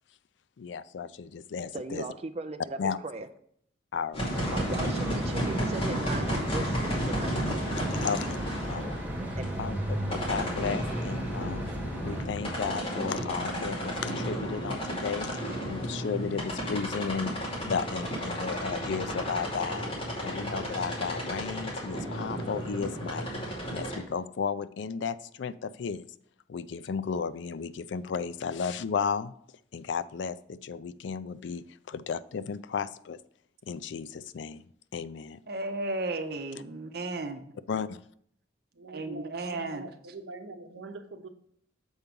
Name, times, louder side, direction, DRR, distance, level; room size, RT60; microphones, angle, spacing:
voice 1, 0.6-2.0 2.8-3.0 3.9-4.7 8.0-8.4 8.7-9.0 9.6-11.7 12.0-19.9 20.2-26.1 26.5-29.3 29.7-33.2 33.7-34.6 34.9-35.4 37.7-38.0, left 6 dB, 75° left, 15 dB, 0.4 m, -34 dB
voice 2, 1.7-3.3 4.5-7.4 9.4-9.5, right 3 dB, 35° right, 7 dB, 0.4 m, -38 dB
sound 1, 4.1-24.0, equal, 30° left, 2.4 m, -33 dB
sound 2, 4.3-12.2, equal, 10° right, 1.5 m, -36 dB
voice 3, 35.5-37.4 38.9-39.9, right 2 dB, 55° right, 6 dB, 0.8 m, -34 dB
voice 4, 38.8-41.3, right 3 dB, 85° right, 7 dB, 0.8 m, -44 dB
7.2 x 4.6 x 5.3 m, 0.65 s
head